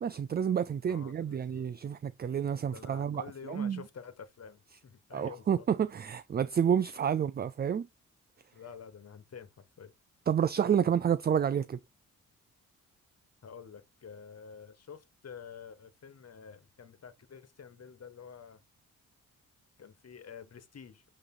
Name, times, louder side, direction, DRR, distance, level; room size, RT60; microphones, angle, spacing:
voice 1, 0.0-3.8 5.1-7.9 10.3-11.8, right 8 dB, 30° right, 0.4 m, -29 dB
voice 2, 0.9-1.7 2.7-5.7 8.5-9.9 13.4-18.6 19.8-21.0, left 6 dB, 50° left, 1.5 m, -49 dB
8.4 x 3.2 x 3.9 m
cardioid pair, 65°, 32 cm